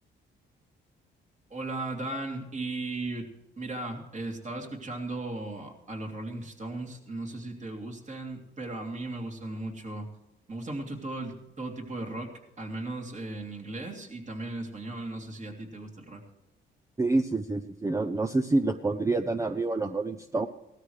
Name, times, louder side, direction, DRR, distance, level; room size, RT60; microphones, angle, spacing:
voice 1, 1.5-3.3 3.6-10.1 10.5-12.3 12.6-16.2, right 2 dB, 35° right, 1 dB, 3.0 m, -36 dB
voice 2, 17.0-20.5, right 2 dB, 15° right, 7 dB, 0.6 m, -27 dB
17.5 x 13.0 x 3.3 m, 0.90 s
cardioid pair, 90°, 20 cm